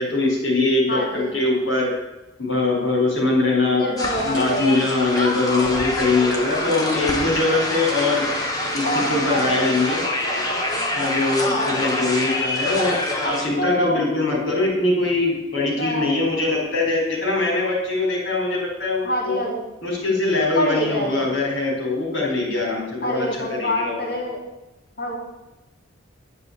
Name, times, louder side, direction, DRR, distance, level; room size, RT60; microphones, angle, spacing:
voice 1, 0.0-1.9 2.4-3.8 4.2-8.3 8.7-10.0 10.9-13.0 13.2-19.4 19.8-24.1, left 2 dB, 75° left, -2 dB, 4.8 m, -22 dB
voice 2, 0.9-1.3 3.7-4.8 8.8-9.7 11.5-11.8 13.6-14.0 15.7-16.1 19.0-19.6 20.5-21.2 23.0-24.4 25.0-25.2, equal, 50° left, -3 dB, 4.0 m, -26 dB
sound 1, 4.0-13.4, left 1 dB, 20° left, 2.2 m, -26 dB
11.0 x 6.9 x 8.3 m, 1.0 s
head